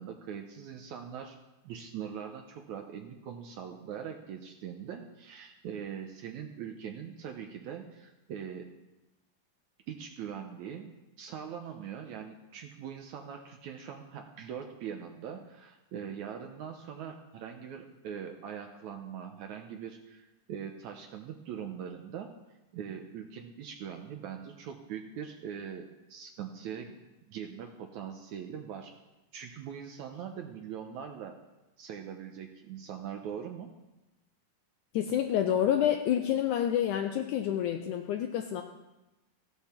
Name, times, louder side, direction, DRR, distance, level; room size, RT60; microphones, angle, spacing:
voice 1, 0.0-1.4 1.6-8.7 9.9-10.9 11.2-22.3 22.7-27.0 27.3-28.9 29.3-31.4 31.8-33.7, right 8 dB, 70° right, 4 dB, 2.0 m, -42 dB
voice 2, 34.9-38.6, left 10 dB, 75° left, 5 dB, 2.0 m, -28 dB
15.5 x 11.5 x 4.4 m, 1.0 s
omnidirectional pair, 3.9 m